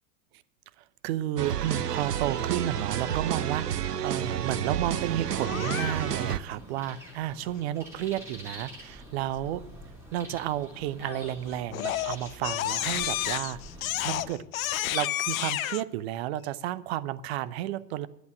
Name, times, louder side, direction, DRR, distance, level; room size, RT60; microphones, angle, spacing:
voice 1, 1.0-9.6 10.1-13.6 14.0-14.4 14.9-18.1, right 12 dB, 45° right, 17 dB, 0.7 m, -32 dB
sound 1, 1.4-6.4, right 9 dB, 80° right, 0.7 m, -30 dB
Crying sobbing, 5.4-6.3 11.0-11.3 11.7-15.8, left 14 dB, 60° left, 0.6 m, -31 dB
sound 2, 6.2-14.4, right 1 dB, 5° right, 5.1 m, -46 dB
11.5 x 8.2 x 7.8 m, 0.83 s
figure-of-eight pair, 85°, 47 cm